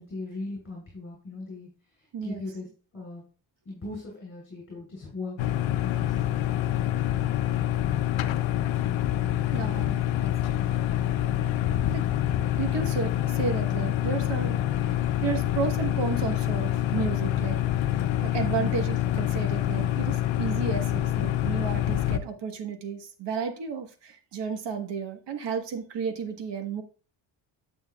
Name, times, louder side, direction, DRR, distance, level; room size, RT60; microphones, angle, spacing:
voice 1, 0.0-1.7 2.0-2.7 2.9-3.2 3.7-5.4 5.8-6.2, left 2 dB, 25° left, -3 dB, 3.6 m, -38 dB
voice 2, 2.1-2.4 9.5-10.6 11.4-17.6 18.2-26.8, right 6 dB, 65° right, 5 dB, 1.5 m, -33 dB
sound 1, 5.4-22.2, left 12 dB, 80° left, 0.7 m, -26 dB
9.0 x 7.8 x 2.4 m, 0.37 s
wide cardioid pair, 140°, 46 cm